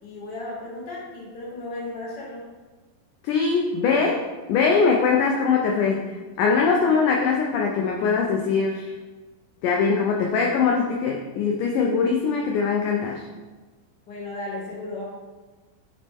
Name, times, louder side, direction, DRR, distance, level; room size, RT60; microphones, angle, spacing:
voice 1, 0.0-2.5 14.1-15.0, left 2 dB, 40° left, -5 dB, 1.7 m, -35 dB
voice 2, 3.2-6.1 6.4-8.9 9.6-13.3, left 5 dB, 80° left, 0 dB, 1.8 m, -22 dB
10.5 x 4.2 x 3.5 m, 1.3 s
omnidirectional pair, 4.3 m